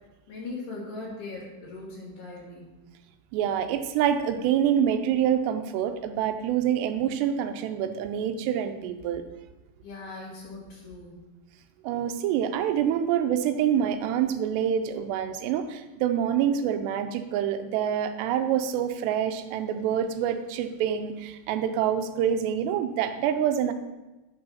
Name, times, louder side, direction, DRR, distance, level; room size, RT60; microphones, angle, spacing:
voice 1, 0.3-2.7 9.8-11.2, left 3 dB, 75° left, -6 dB, 3.7 m, -39 dB
voice 2, 3.3-9.2 11.8-23.7, right 9 dB, 85° right, 8 dB, 2.8 m, -26 dB
8.8 x 5.2 x 5.6 m, 1.1 s
omnidirectional pair, 4.8 m